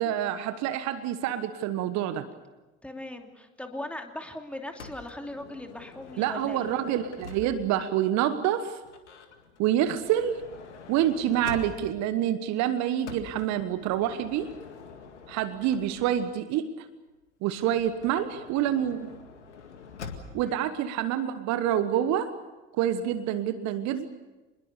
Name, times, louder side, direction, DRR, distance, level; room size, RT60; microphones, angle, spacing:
voice 1, 0.0-2.3 6.2-8.8 9.6-10.4 10.9-14.5 15.3-16.9 17.4-19.1 20.3-22.3 22.7-24.1, right 11 dB, 50° right, 12 dB, 1.3 m, -27 dB
voice 2, 2.8-6.7 20.4-20.7, left 1 dB, 5° left, 4 dB, 2.8 m, -39 dB
Motor vehicle (road) / Sliding door, 4.8-7.9 8.8-12.1 13.0-16.3 17.6-20.5, left 5 dB, 75° left, 2.1 m, -45 dB
26.5 x 21.0 x 6.9 m, 1.1 s
figure-of-eight pair, 65°, 35 cm